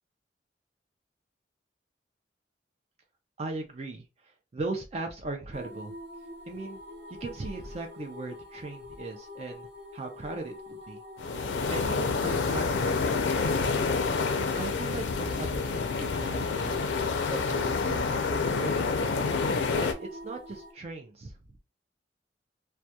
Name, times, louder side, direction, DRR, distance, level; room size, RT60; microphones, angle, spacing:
voice 1, 3.4-5.9 6.5-6.8 7.1-9.7 9.9-11.0 11.7-14.0 14.6-16.9 17.3-19.1 19.7-21.3, right 3 dB, 35° right, 3 dB, 0.4 m, -38 dB
sound 1, 5.5-20.7, left 2 dB, 60° right, 0.9 m, -45 dB
sound 2, 11.2-19.9, left 4 dB, 90° left, 0.5 m, -28 dB
2.3 x 2.2 x 2.7 m, 0.27 s
head